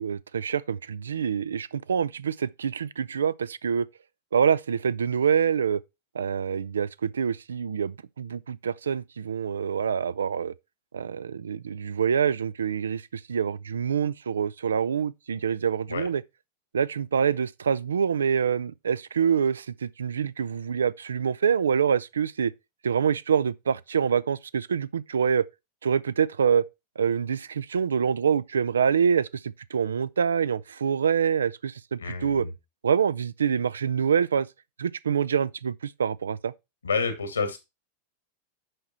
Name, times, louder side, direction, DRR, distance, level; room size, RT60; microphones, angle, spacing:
voice 1, 0.0-3.9 4.3-5.8 6.1-10.5 10.9-16.2 16.7-22.5 22.8-25.4 25.8-26.6 27.0-32.4 32.8-34.5 34.8-36.5, right 7 dB, 70° right, 0.4 m, -26 dB
voice 2, 32.0-32.5 36.8-37.6, left 4 dB, 75° left, 2.3 m, -29 dB
7.9 x 6.0 x 4.3 m
figure-of-eight pair, 90°, 0 cm